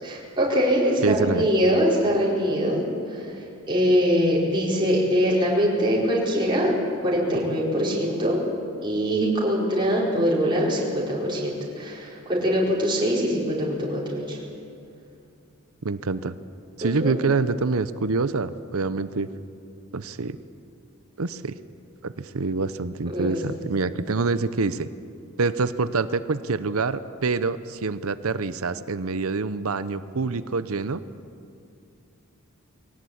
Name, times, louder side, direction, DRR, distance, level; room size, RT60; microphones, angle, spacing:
voice 1, 0.0-2.8 3.1-3.3 3.7-6.8 7.0-8.4 8.8-14.4 16.8-17.1 23.1-23.4, equal, 20° right, -5 dB, 4.7 m, -23 dB
voice 2, 1.0-1.5 15.8-16.4 16.8-19.3 19.9-20.4 21.2-21.6 22.0-24.9 25.4-31.0, right 4 dB, 70° right, 14 dB, 0.7 m, -26 dB
22.5 x 17.5 x 8.7 m, 2.5 s
head